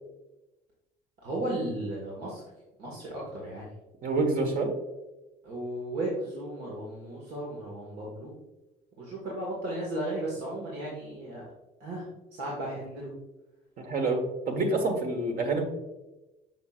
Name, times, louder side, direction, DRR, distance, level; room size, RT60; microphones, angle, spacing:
voice 1, 1.2-2.4 2.8-3.7 5.4-8.3 9.0-11.4 11.8-12.0 12.3-13.1, right 1 dB, 75° right, -4 dB, 1.9 m, -35 dB
voice 2, 4.0-4.7 13.8-15.6, right 2 dB, 55° right, 3 dB, 1.5 m, -27 dB
6.3 x 6.3 x 2.5 m, 1.0 s
cardioid pair, 110°, 17 cm